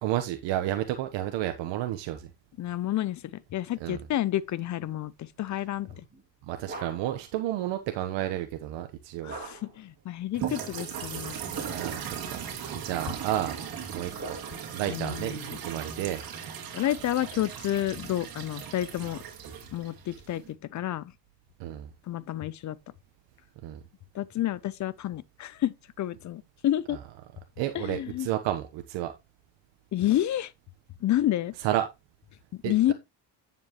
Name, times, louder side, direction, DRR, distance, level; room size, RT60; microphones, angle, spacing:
voice 1, 0.0-2.3 3.8-4.0 6.5-9.3 11.4-12.4 12.8-13.6 13.9-14.4 14.7-16.2 21.6-21.9 23.6-23.8 27.6-29.1 31.6-31.8 32.6-32.9, right 13 dB, 80° right, 1.2 m, -31 dB
voice 2, 2.6-5.9 9.2-11.4 14.9-15.6 16.7-19.2 19.7-21.1 22.1-22.8 24.1-27.0 27.7-28.3 29.9-30.5 31.0-31.5 32.5-32.9, left 13 dB, 40° left, 0.6 m, -30 dB
sound 1, 6.1-7.3 9.3-9.9 11.2-12.1 12.9-14.8, right 3 dB, 25° right, 6.6 m, -43 dB
sound 2, 10.3-20.5, right 8 dB, 55° right, 2.9 m, -38 dB
9.7 x 7.4 x 3.1 m
cardioid pair, 130°, 43 cm